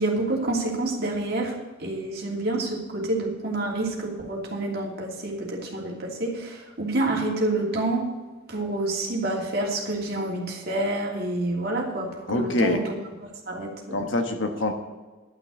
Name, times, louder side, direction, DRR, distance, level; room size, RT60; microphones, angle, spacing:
voice 1, 0.0-8.1 8.5-12.9 13.2-14.0, right 2 dB, 50° right, -1 dB, 2.8 m, -28 dB
voice 2, 12.3-12.8 13.9-14.7, left 2 dB, 65° left, 6 dB, 1.2 m, -25 dB
11.5 x 6.1 x 8.7 m, 1.3 s
head